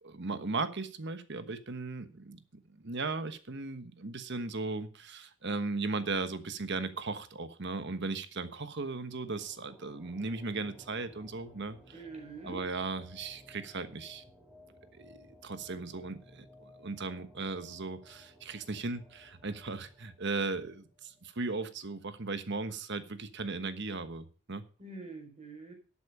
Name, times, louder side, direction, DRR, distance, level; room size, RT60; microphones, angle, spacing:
voice 1, 0.0-2.4 2.7-12.0 12.4-14.2 15.0-24.6, right 3 dB, 55° right, 10 dB, 1.3 m, -37 dB
sound 1, 9.1-21.7, left 1 dB, 5° right, 3.4 m, -58 dB
voice 2, 11.9-12.6 24.8-25.7, right 3 dB, 35° right, 3 dB, 4.4 m, -45 dB
12.0 x 8.5 x 5.5 m, 0.37 s
head